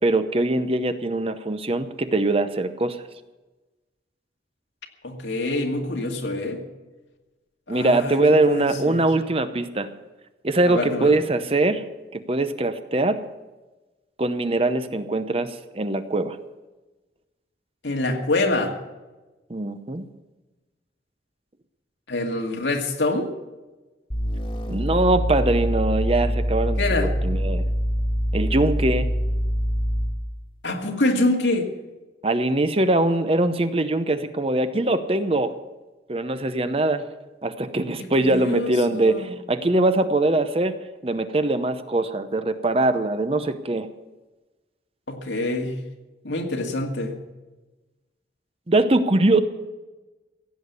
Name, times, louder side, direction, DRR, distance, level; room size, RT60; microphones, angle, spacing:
voice 1, 0.0-3.0 7.7-9.9 10.4-11.8 12.1-13.2 14.2-16.4 19.5-20.1 24.7-26.8 27.2-27.6 28.3-29.1 32.2-35.6 36.1-37.1 37.4-40.8 41.0-43.9 48.7-49.4, right 2 dB, 30° right, 10 dB, 0.7 m, -22 dB
voice 2, 5.0-6.6 7.7-8.2 8.5-9.1 10.6-11.2 17.8-18.7 22.1-23.3 26.8-27.1 30.6-31.7 38.2-39.3 45.1-45.8 46.2-47.2, left 2 dB, 85° left, 2 dB, 2.1 m, -25 dB
sound 1, 24.1-30.3, equal, 30° left, 1.6 m, -24 dB
16.0 x 8.6 x 8.2 m, 1.2 s
head